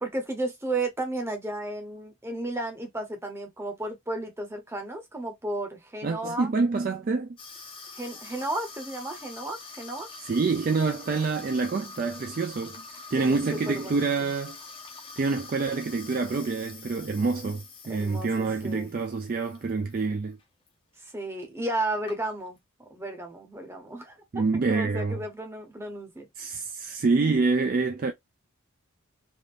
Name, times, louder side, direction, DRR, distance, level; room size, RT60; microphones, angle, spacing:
voice 1, 0.0-6.5 7.9-10.1 13.2-14.3 17.9-18.9 21.0-22.6 22.9-24.2 24.7-26.3, right 2 dB, 10° right, 0.8 m, -33 dB
voice 2, 6.0-7.4 10.2-12.8 13.1-14.6 15.2-20.4 24.3-25.2 26.4-28.1, right 4 dB, 40° right, 0.3 m, -27 dB
Water tap faucet / Sink (filling or washing), 7.4-20.1 20.4-20.7 21.4-21.5 21.7-22.6, left 4 dB, 25° left, 0.6 m, -45 dB
3.5 x 2.5 x 2.4 m
head